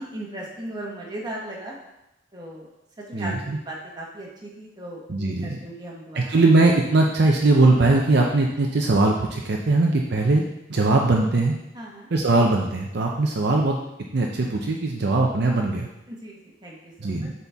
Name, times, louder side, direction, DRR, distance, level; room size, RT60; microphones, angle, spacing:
voice 1, 0.0-1.8 2.3-2.7 3.1-6.3 11.7-12.1 16.1-17.3, right 1 dB, 20° right, -3 dB, 1.4 m, -37 dB
voice 2, 3.1-3.6 5.1-5.6 6.1-10.4 10.7-11.5 12.1-13.8 14.1-15.9 17.0-17.3, right 2 dB, 60° right, 0 dB, 0.6 m, -20 dB
8.1 x 4.3 x 3.5 m, 0.89 s
head